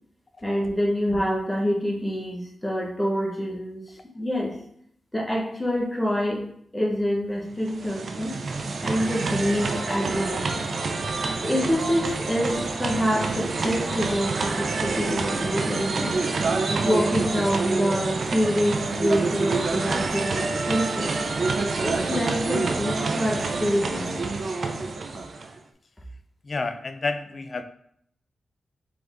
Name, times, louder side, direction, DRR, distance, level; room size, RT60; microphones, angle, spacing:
voice 1, 0.4-4.5 5.1-6.4 6.7-8.3 8.8-10.6 11.4-16.2 16.8-21.1 21.8-24.2 24.7-24.9, equal, 10° left, -2 dB, 1.0 m, -26 dB
sound 1, 7.5-25.6, right 3 dB, 65° right, 0.5 m, -27 dB
voice 2, 26.4-27.6, left 3 dB, 50° left, 8 dB, 0.4 m, -29 dB
3.9 x 3.4 x 3.5 m, 0.69 s
cardioid pair, 70°, 0 cm